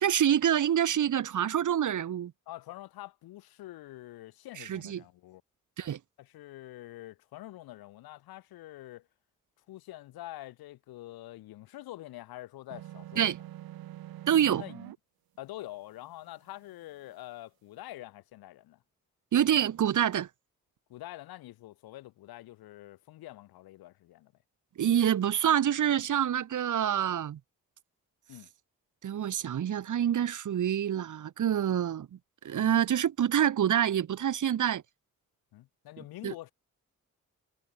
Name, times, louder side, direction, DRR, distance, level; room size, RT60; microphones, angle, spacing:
voice 1, 0.0-2.3 4.6-5.0 5.8-6.0 13.2-13.4 14.3-14.6 19.3-20.3 24.8-27.4 29.0-32.1 32.4-34.8 36.2-36.3, right 10 dB, 55° right, 0.8 m, -26 dB
voice 2, 2.5-5.4 6.2-9.1 9.7-13.3 14.5-14.9 15.4-18.8 20.9-24.3 28.3-28.5 32.6-32.7 35.5-36.5, left 16 dB, 90° left, 1.5 m, -46 dB
sound 1, 12.7-15.0, right 13 dB, 80° right, 1.1 m, -44 dB
supercardioid pair, 40°, 36 cm